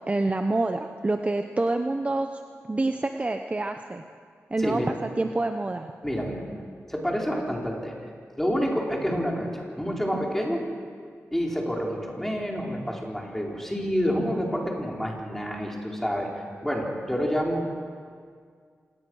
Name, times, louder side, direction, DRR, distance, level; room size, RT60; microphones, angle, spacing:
voice 1, 0.1-2.4 2.7-4.0 4.5-5.9, right 2 dB, 25° right, 6 dB, 0.9 m, -27 dB
voice 2, 4.6-4.9 6.0-6.5 6.9-8.0 8.4-10.6 11.3-17.6, equal, 5° left, -1 dB, 4.4 m, -28 dB
26.5 x 19.0 x 6.4 m, 2.1 s
wide cardioid pair, 95°, 5 cm